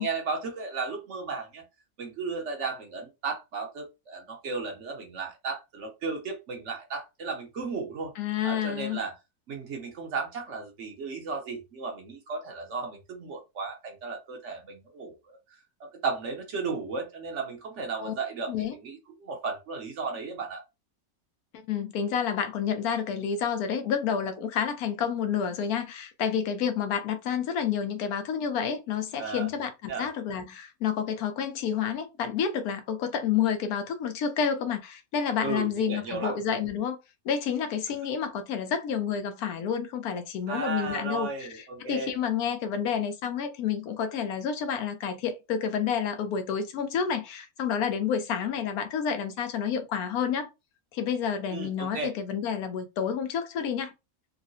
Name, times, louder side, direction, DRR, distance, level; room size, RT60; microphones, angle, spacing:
voice 1, 0.0-1.6 2.0-8.1 8.4-9.2 9.5-15.4 15.8-20.6 29.2-29.5 29.9-30.1 35.4-36.4 40.5-42.1 51.5-52.1, right 4 dB, 60° right, 1.0 m, -35 dB
voice 2, 8.2-9.0 18.0-18.1 18.5-18.7 21.7-37.0 37.2-50.5 50.9-53.9, left 7 dB, 85° left, 1.1 m, -29 dB
3.7 x 2.1 x 2.6 m
omnidirectional pair, 1.5 m